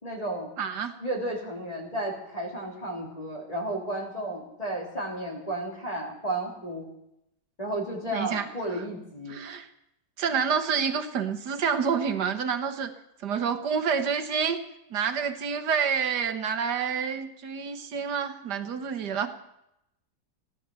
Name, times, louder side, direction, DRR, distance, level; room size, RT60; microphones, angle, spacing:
voice 1, 0.0-0.5 1.0-6.9 7.6-9.4, right 1 dB, 20° left, -1 dB, 3.3 m, -33 dB
voice 2, 0.6-0.9 8.1-8.5 9.3-9.7 10.2-12.9 13.2-14.6 14.9-19.3, right 6 dB, 75° right, 8 dB, 1.8 m, -28 dB
17.5 x 11.0 x 7.0 m, 0.83 s
omnidirectional pair, 1.8 m